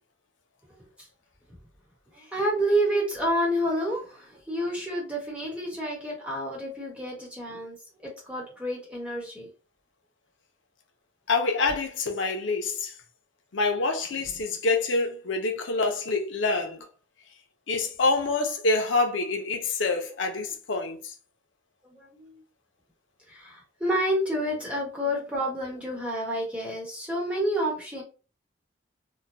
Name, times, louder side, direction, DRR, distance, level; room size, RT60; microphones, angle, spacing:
voice 1, 2.1-7.8 8.0-9.5 21.8-22.4 23.3-28.0, equal, 5° right, 1.1 m, -29 dB
voice 2, 11.3-12.9 13.5-16.8 17.7-21.0, left 3 dB, 75° left, 0.6 m, -26 dB
3.0 x 2.2 x 2.6 m
head